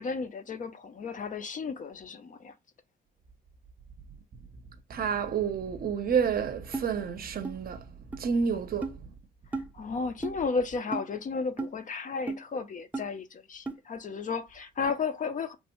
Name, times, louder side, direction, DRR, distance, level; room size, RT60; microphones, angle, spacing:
voice 1, 0.0-2.5 9.5-15.6, left 5 dB, 40° left, 0.5 m, -33 dB
voice 2, 4.9-7.9 8.1-9.1, right 6 dB, 50° right, 0.6 m, -29 dB
sound 1, 6.7-6.9 7.4-7.5 8.1-8.2 8.8-9.0 9.5-9.7 10.2-10.4 10.9-11.1 11.6-11.7 12.3-12.4 12.9-13.0 13.7-13.8, right 3 dB, 5° right, 0.5 m, -33 dB
3.2 x 2.2 x 2.9 m
cardioid pair, 90°, 20 cm